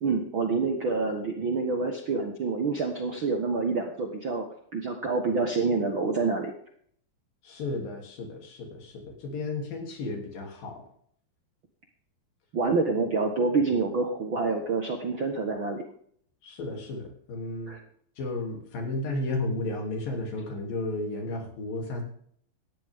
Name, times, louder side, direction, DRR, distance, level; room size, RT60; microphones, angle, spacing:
voice 1, 0.0-4.5 4.7-6.5 12.5-15.8 17.7-17.8, right 4 dB, 55° right, 3 dB, 1.4 m, -27 dB
voice 2, 7.4-10.8 16.4-17.8 18.2-22.0, left 2 dB, 70° left, 1 dB, 4.8 m, -33 dB
18.5 x 14.5 x 3.7 m, 0.63 s
omnidirectional pair, 4.1 m